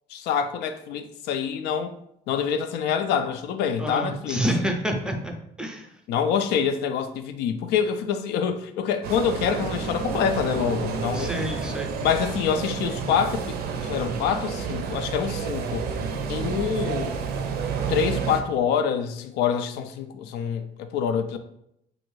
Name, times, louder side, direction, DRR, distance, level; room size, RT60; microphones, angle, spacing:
voice 1, 0.1-1.9 2.3-4.4 6.1-11.3 12.0-15.9 16.3-17.2 17.9-21.4, left 7 dB, 85° left, 0.4 m, -26 dB
voice 2, 3.8-5.9 11.1-11.9, equal, 5° right, 0.4 m, -28 dB
sound 1, 9.0-18.4, right 6 dB, 70° right, 0.5 m, -30 dB
3.0 x 2.6 x 3.1 m
cardioid pair, 110°, 17 cm